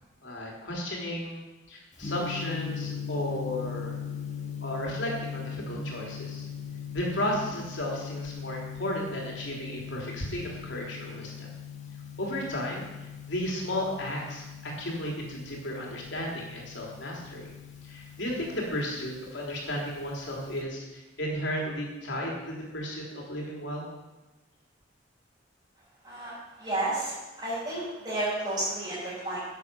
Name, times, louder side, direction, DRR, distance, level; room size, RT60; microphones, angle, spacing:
voice 1, 0.2-1.4 1.7-4.0 4.6-6.5 6.9-11.5 12.2-12.9 13.3-17.5 17.8-23.9, left 1 dB, 70° left, -2 dB, 3.5 m, -34 dB
Gong, 2.0-20.6, left 7 dB, 35° left, 1.7 m, -40 dB
voice 2, 26.6-29.4, right 2 dB, 25° right, -13 dB, 5.1 m, -31 dB
11.0 x 8.2 x 7.0 m, 1.1 s
head